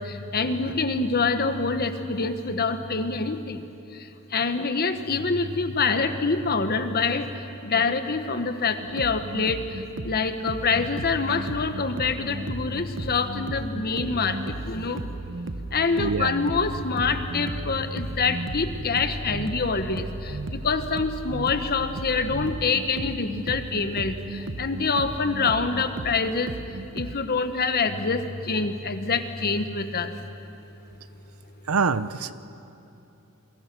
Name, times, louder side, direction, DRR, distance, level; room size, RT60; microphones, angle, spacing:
voice 1, 0.0-3.6 4.3-7.3 7.6-9.6 10.0-15.1 15.7-26.5 26.9-30.1, left 4 dB, 45° left, 9 dB, 1.2 m, -26 dB
sound 1, 8.8-27.2, right 2 dB, 60° right, 0.9 m, -36 dB
voice 2, 16.0-16.3 31.7-32.3, right 5 dB, 90° right, 14 dB, 0.8 m, -24 dB
28.0 x 23.0 x 6.2 m, 2.7 s
head